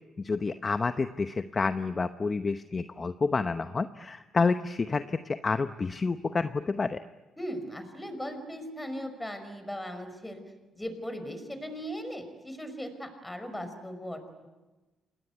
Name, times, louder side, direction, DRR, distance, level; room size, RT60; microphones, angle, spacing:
voice 1, 0.2-7.0, left 4 dB, 30° left, 10 dB, 0.9 m, -29 dB
voice 2, 7.4-10.4 10.7-14.5, equal, 10° left, 8 dB, 5.4 m, -38 dB
28.0 x 20.0 x 9.4 m, 1.2 s
cardioid pair, 90°, 0 cm